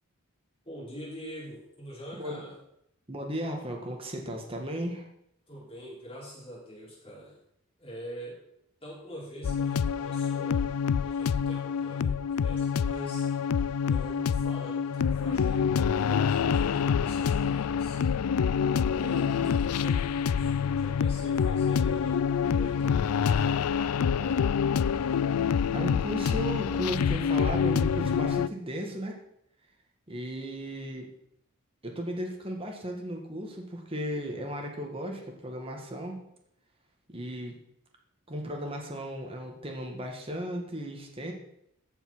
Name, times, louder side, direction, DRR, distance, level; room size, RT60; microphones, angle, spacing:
voice 1, 0.6-2.5 5.5-7.4 7.8-8.4 8.8-10.7 11.0-13.3 13.9-18.0 18.9-23.8 24.1-24.5, equal, 25° left, -7 dB, 5.4 m, -44 dB
voice 2, 3.1-5.1 17.5-17.6 25.2-29.2 30.1-31.1 31.8-36.2 37.1-37.6 38.3-41.3, equal, 25° right, 1 dB, 1.7 m, -35 dB
sound 1, 9.4-28.5, left 7 dB, 90° left, 0.4 m, -26 dB
14.5 x 5.6 x 6.2 m, 0.75 s
head